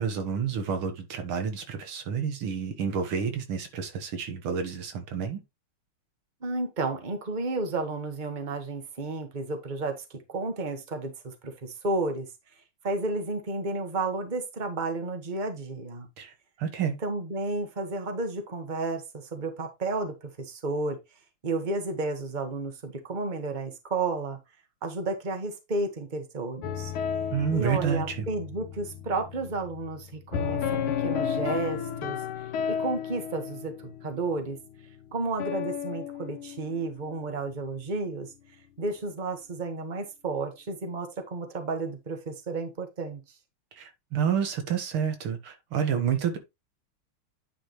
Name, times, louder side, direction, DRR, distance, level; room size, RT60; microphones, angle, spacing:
voice 1, 0.0-5.4 16.2-17.0 27.3-28.3 43.7-46.4, right 7 dB, 85° right, 2.4 m, -29 dB
voice 2, 6.4-12.3 12.8-16.1 17.0-21.0 21.4-24.4 24.8-26.9 27.5-34.6 35.1-38.3 38.8-43.2, right 3 dB, 25° right, 1.6 m, -32 dB
sound 1, 26.6-37.5, left 8 dB, 85° left, 1.8 m, -33 dB
10.0 x 5.1 x 3.2 m
omnidirectional pair, 2.3 m